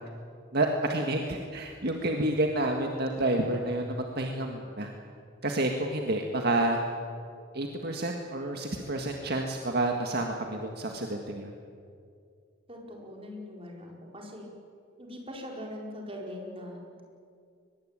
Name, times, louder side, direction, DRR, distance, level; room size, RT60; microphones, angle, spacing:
voice 1, 0.5-4.9 5.4-6.8 7.5-11.5, right 1 dB, 55° right, 2 dB, 1.8 m, -29 dB
voice 2, 12.7-14.5 15.0-17.0, left 1 dB, 30° right, 0 dB, 4.6 m, -41 dB
23.0 x 21.0 x 8.9 m, 2.3 s
head